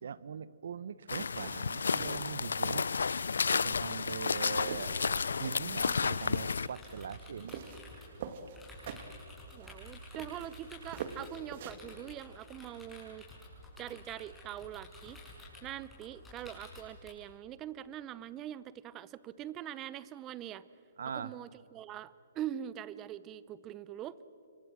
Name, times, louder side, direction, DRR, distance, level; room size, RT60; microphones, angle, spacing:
voice 1, 0.0-2.9 3.5-7.6 9.0-9.1 21.0-21.3, right 7 dB, 70° right, 18 dB, 0.9 m, -41 dB
sound 1, 1.1-6.7, left 5 dB, 85° left, 0.5 m, -32 dB
sound 2, 1.3-11.9, right 7 dB, 50° right, 1.8 m, -47 dB
sound 3, 5.6-17.1, left 1 dB, 5° left, 6.4 m, -51 dB
voice 2, 9.5-13.3 13.8-15.2 15.6-20.6 21.1-24.2, right 11 dB, 20° right, 18 dB, 0.7 m, -43 dB
27.5 x 23.5 x 6.3 m, 2.9 s
hypercardioid pair, 150°, 0 cm